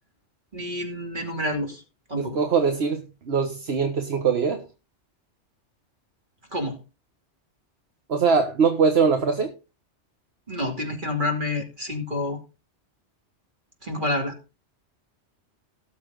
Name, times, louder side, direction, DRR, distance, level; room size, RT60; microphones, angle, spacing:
voice 1, 0.5-1.8 2.1-2.4 6.5-6.8 10.5-12.4 13.8-14.3, left 1 dB, 45° right, 2.8 m, -28 dB
voice 2, 2.2-4.6 8.1-9.5, right 5 dB, 60° right, 1.5 m, -22 dB
17.5 x 7.0 x 3.8 m
omnidirectional pair, 1.2 m